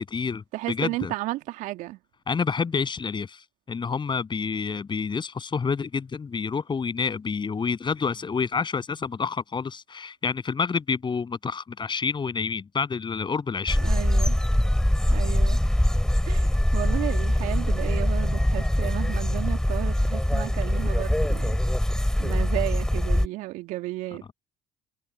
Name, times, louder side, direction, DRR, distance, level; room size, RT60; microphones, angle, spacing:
voice 1, 0.0-1.1 2.3-13.8, left 5 dB, 35° left, 7.9 m, -28 dB
voice 2, 0.5-2.0 13.8-14.4 15.1-15.6 16.2-21.6 22.2-24.3, right 18 dB, 65° right, 2.3 m, -33 dB
sound 1, 13.7-23.3, left 1 dB, 5° left, 3.8 m, -23 dB
hypercardioid pair, 60°, 14 cm